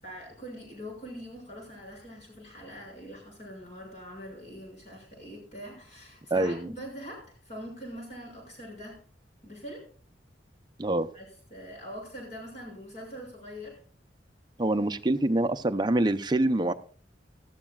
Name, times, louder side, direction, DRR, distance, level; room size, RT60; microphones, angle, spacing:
voice 1, 0.0-9.0 9.4-9.9 11.1-13.8, equal, 40° left, -1 dB, 6.5 m, -43 dB
voice 2, 6.3-6.7 10.8-11.1 14.6-16.7, right 1 dB, 25° right, 8 dB, 0.6 m, -25 dB
19.0 x 13.0 x 2.4 m, 0.43 s
head